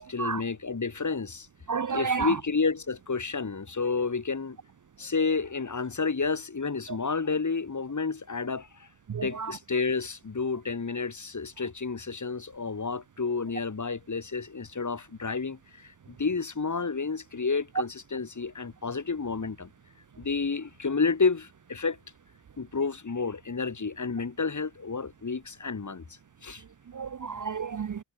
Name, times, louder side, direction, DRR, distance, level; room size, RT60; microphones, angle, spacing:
voice 1, 0.0-1.5 1.9-4.6 5.0-8.9 9.2-19.7 20.2-22.0 22.6-26.0 26.4-26.6, left 4 dB, 35° left, 2.1 m, -30 dB
voice 2, 1.7-2.3 9.1-9.5 26.9-28.0, right 5 dB, 40° right, 0.6 m, -30 dB
wide cardioid pair, 105°, 49 cm